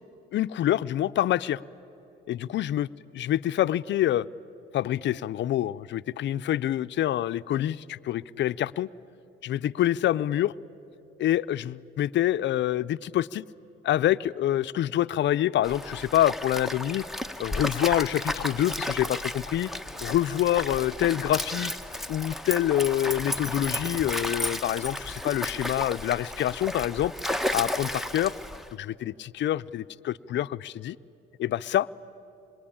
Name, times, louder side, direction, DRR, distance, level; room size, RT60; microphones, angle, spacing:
voice 1, 0.3-1.6 2.3-2.9 3.1-4.3 4.7-8.9 9.4-10.5 11.2-13.4 13.8-17.0 17.4-19.7 20.0-21.7 22.1-27.1 27.5-28.3 28.7-31.0 31.4-32.0, left 12 dB, 65° left, 15 dB, 0.5 m, -26 dB
Stream, 15.6-28.7, left 1 dB, ahead, 1.0 m, -33 dB
27.0 x 22.5 x 8.7 m, 3.0 s
cardioid pair, 90°, 20 cm